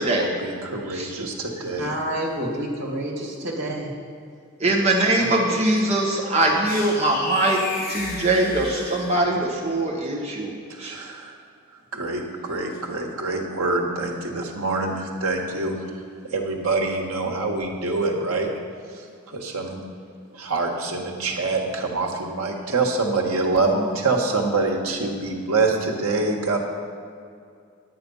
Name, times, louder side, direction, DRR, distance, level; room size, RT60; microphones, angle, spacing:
voice 1, 0.0-1.3 1.6-2.4 10.7-11.4 11.7-18.5 18.9-19.8 20.3-26.6, right 3 dB, 85° right, 1 dB, 1.5 m, -26 dB
voice 2, 1.8-3.9, right 1 dB, 50° right, -2 dB, 2.3 m, -28 dB
voice 3, 4.6-7.6 7.9-10.5 10.8-10.9, right 2 dB, 30° right, -2 dB, 1.5 m, -22 dB
sound 1, 6.6-9.5, left 2 dB, 45° left, 1.5 m, -33 dB
10.0 x 8.9 x 5.5 m, 2.3 s
head